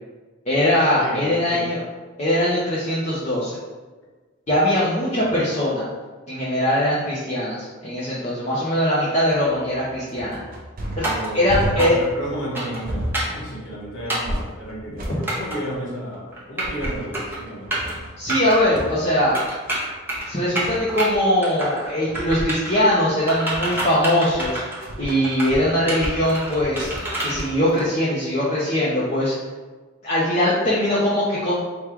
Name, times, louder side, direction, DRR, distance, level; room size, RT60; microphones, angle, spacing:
voice 1, 0.5-1.8 2.2-3.6 4.5-5.8 6.3-10.4 11.0-11.1 11.3-11.9 18.2-19.4 20.3-24.6 25.0-26.9 27.2-29.3 30.0-31.5, left 1 dB, 35° left, -9 dB, 0.7 m, -21 dB
voice 2, 1.0-1.7 11.0-17.7, equal, 80° left, -6 dB, 1.4 m, -32 dB
sound 1, 9.2-27.8, right 1 dB, 45° right, 0.6 m, -33 dB
sound 2, 11.0-11.3 11.8-12.1 12.5-12.8 13.1-13.4 14.1-14.4 15.3-15.6 16.3-16.9 17.1-17.4 17.7-17.9 18.3-18.6 19.3-20.3 20.6-21.1 21.4-21.9 22.1-22.8 23.3-24.8 25.2-25.5 25.9-27.3, right 1 dB, 10° right, 0.7 m, -27 dB
3.5 x 2.4 x 4.4 m, 1.3 s
head